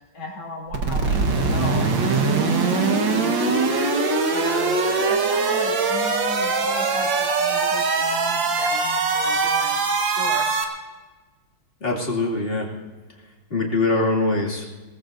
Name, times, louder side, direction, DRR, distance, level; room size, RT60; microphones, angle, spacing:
voice 1, 0.1-3.9 4.3-10.5, left 1 dB, 75° left, -3 dB, 4.0 m, -36 dB
sound 1, 0.7-10.6, right 4 dB, 65° right, 2.1 m, -22 dB
voice 2, 11.8-12.7 13.5-14.7, left 2 dB, 30° left, -2 dB, 2.6 m, -23 dB
22.5 x 18.5 x 2.6 m, 1.2 s
omnidirectional pair, 2.2 m